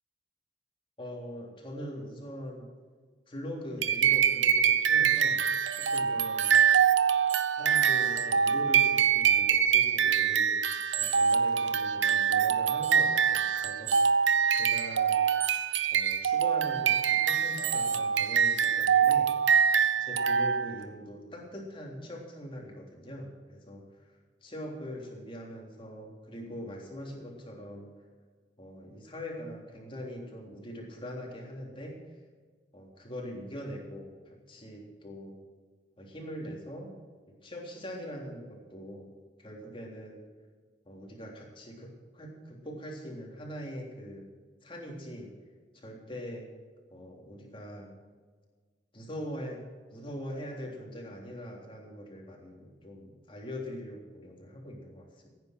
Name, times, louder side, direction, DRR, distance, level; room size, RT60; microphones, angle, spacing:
voice 1, 1.0-2.7 3.3-5.4 5.7-6.6 7.5-10.6 11.0-15.2 15.9-19.3 20.0-24.1 24.4-27.9 28.6-32.0 32.7-35.4 36.0-36.9 37.4-39.1 39.4-40.2 40.9-44.3 44.6-45.3 45.7-46.5 46.9-47.9 48.9-49.6 49.9-55.3, equal, 30° left, -1 dB, 3.6 m, -42 dB
sound 1, 3.8-20.9, right 7 dB, 85° right, 0.9 m, -25 dB
16.0 x 9.8 x 6.1 m, 1.5 s
head